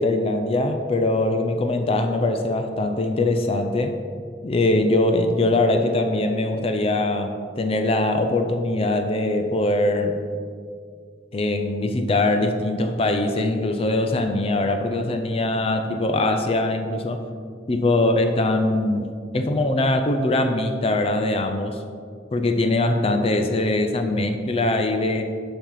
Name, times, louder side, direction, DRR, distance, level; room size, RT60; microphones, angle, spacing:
voice 1, 0.0-4.0 4.4-10.2 11.3-17.2 17.7-21.8 22.3-25.2, left 2 dB, 30° left, 6 dB, 0.5 m, -22 dB
7.5 x 5.2 x 5.7 m, 2.1 s
head